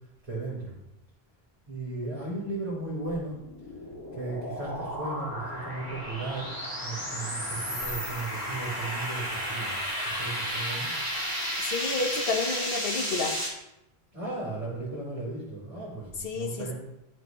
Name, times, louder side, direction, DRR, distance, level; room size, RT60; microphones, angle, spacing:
voice 1, 0.2-0.7 1.7-3.4 4.1-6.5 6.8-9.7 10.0-10.9 14.1-16.7, right 2 dB, 35° right, -10 dB, 4.1 m, -35 dB
sound 1, 3.2-13.5, equal, 20° left, 2.6 m, -33 dB
voice 2, 11.6-13.3 16.2-16.7, left 4 dB, 65° left, 2 dB, 1.4 m, -30 dB
12.5 x 7.9 x 3.1 m, 0.89 s
omnidirectional pair, 1.1 m